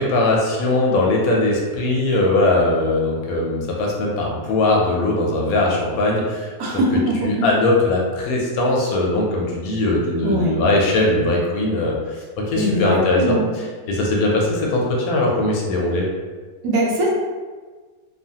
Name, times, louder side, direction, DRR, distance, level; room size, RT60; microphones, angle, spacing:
voice 1, 0.0-6.8 7.2-13.4 13.9-16.1, left 2 dB, 75° left, -2 dB, 1.0 m, -20 dB
voice 2, 6.6-7.5 10.2-10.5 12.6-13.5 16.6-17.1, right 1 dB, 75° right, -2 dB, 1.1 m, -21 dB
2.7 x 2.4 x 2.7 m, 1.4 s
omnidirectional pair, 1.7 m